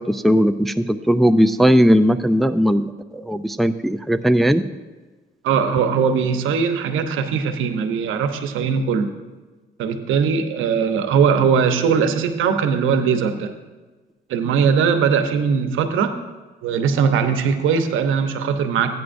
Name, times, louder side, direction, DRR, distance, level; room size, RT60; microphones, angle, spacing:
voice 1, 0.0-4.6, equal, ahead, 9 dB, 0.4 m, -17 dB
voice 2, 5.4-9.1 9.8-13.5 14.3-16.1 16.6-18.9, right 6 dB, 85° right, 7 dB, 0.9 m, -20 dB
15.0 x 9.3 x 2.6 m, 1.3 s
cardioid pair, 90°, 20 cm